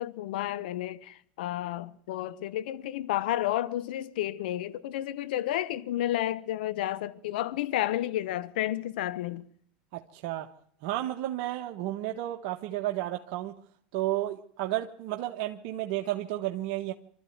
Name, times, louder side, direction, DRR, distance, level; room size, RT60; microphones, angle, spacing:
voice 1, 0.0-9.5, left 13 dB, 75° left, 1.1 m, -31 dB
voice 2, 9.9-10.5 10.8-13.6 13.9-16.9, right 14 dB, 65° right, 1.4 m, -32 dB
24.5 x 13.5 x 9.5 m
hypercardioid pair, 100°, 5 cm